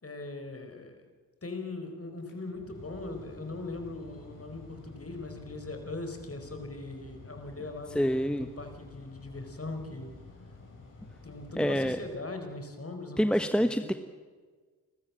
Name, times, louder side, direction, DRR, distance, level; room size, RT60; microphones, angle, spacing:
voice 1, 0.0-1.0 1.4-10.1 11.2-13.9, left 2 dB, 35° left, 6 dB, 4.9 m, -40 dB
Mechanical fan, 2.2-12.7, left 3 dB, 50° left, 7.2 m, -50 dB
voice 2, 7.9-8.5 11.6-12.0 13.2-13.9, equal, ahead, 8 dB, 1.2 m, -26 dB
29.5 x 13.5 x 7.6 m, 1.4 s
cardioid pair, 55°, 39 cm